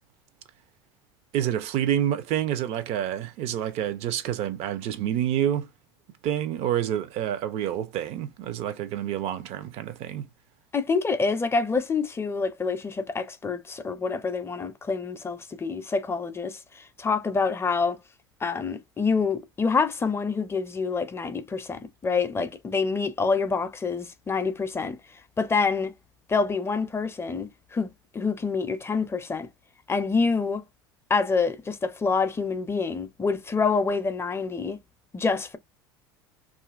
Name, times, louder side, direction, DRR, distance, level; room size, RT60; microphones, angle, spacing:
voice 1, 1.3-5.7 6.2-10.3, right 10 dB, 55° right, 0.6 m, -28 dB
voice 2, 10.7-18.0 18.4-25.0 25.4-25.9 26.3-29.5 29.9-30.6 31.1-34.8 35.1-35.6, left 4 dB, 20° left, 0.5 m, -27 dB
2.7 x 2.4 x 2.4 m
hypercardioid pair, 80°, 12 cm